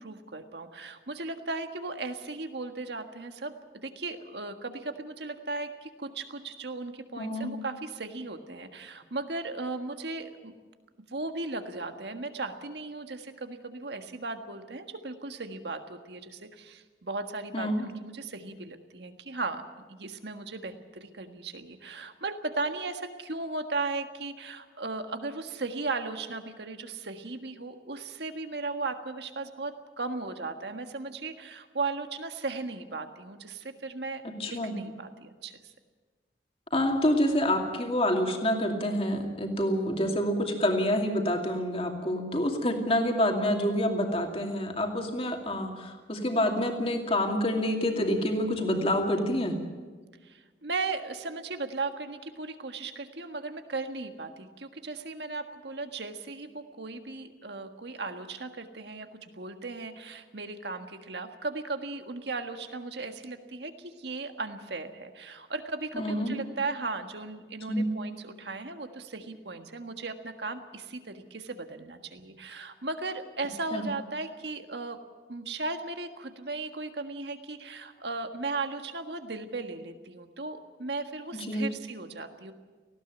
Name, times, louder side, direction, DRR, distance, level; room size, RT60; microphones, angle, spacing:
voice 1, 0.0-3.5 3.8-10.5 11.1-19.6 19.9-35.7 50.2-75.0 75.3-82.5, right 3 dB, 65° right, 7 dB, 1.6 m, -36 dB
voice 2, 7.2-7.5 17.5-17.9 34.4-34.7 36.7-49.5 65.9-66.4 67.7-67.9 73.7-73.8 81.5-81.7, left 1 dB, 30° left, 3 dB, 2.5 m, -27 dB
18.5 x 16.0 x 9.2 m, 1.4 s
head